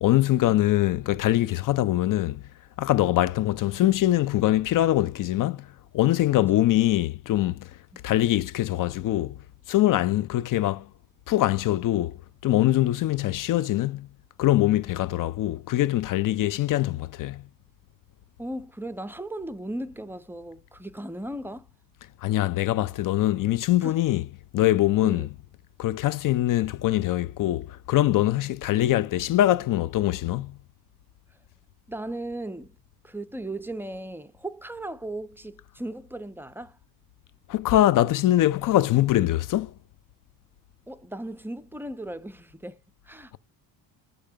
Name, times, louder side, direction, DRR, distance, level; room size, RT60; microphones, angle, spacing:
voice 1, 0.0-2.4 2.8-5.7 5.9-7.6 8.0-9.4 9.7-10.9 11.3-12.1 12.4-14.1 14.4-17.4 22.2-24.2 24.5-25.3 25.8-30.5 37.5-39.7, left 14 dB, 50° left, 0.5 m, -23 dB
voice 2, 18.4-21.7 23.8-24.0 25.0-25.3 31.9-32.7 33.0-36.8 40.9-42.8 43.1-43.4, right 1 dB, 5° right, 0.5 m, -37 dB
7.6 x 3.4 x 5.0 m
cardioid pair, 105°, 42 cm